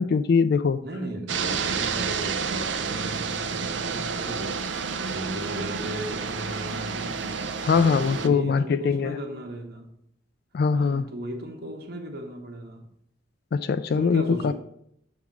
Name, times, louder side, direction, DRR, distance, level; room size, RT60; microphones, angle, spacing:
voice 1, 0.0-0.8 7.6-9.2 10.5-11.1 13.5-14.5, left 5 dB, 55° left, 0.3 m, -22 dB
voice 2, 0.8-4.6 5.0-7.3 7.7-9.9 10.7-12.9 13.9-14.5, right 1 dB, 55° right, 1.1 m, -36 dB
sound 1, 1.3-8.3, right 5 dB, 70° right, 0.6 m, -30 dB
7.1 x 3.6 x 6.2 m
head